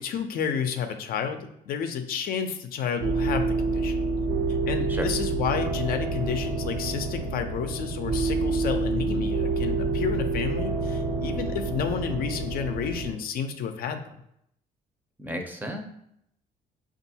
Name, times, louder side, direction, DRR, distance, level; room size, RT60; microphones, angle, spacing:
voice 1, 0.0-4.0 4.7-14.2, left 7 dB, 60° left, 7 dB, 0.5 m, -31 dB
sound 1, 3.0-13.1, right 3 dB, 85° right, 1.0 m, -28 dB
voice 2, 15.2-15.8, equal, 10° right, 3 dB, 0.6 m, -33 dB
5.3 x 2.4 x 2.7 m, 0.75 s
cardioid pair, 110°, 17 cm